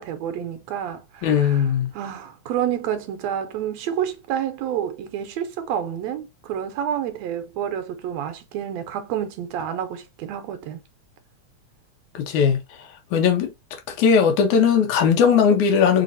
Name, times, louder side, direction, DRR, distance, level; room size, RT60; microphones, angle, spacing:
voice 1, 0.0-10.8, right 9 dB, 75° right, 1.8 m, -29 dB
voice 2, 1.2-1.9 12.1-12.6 13.1-13.5 14.0-16.0, left 7 dB, 85° left, 2.5 m, -18 dB
5.8 x 2.8 x 2.6 m
omnidirectional pair, 3.3 m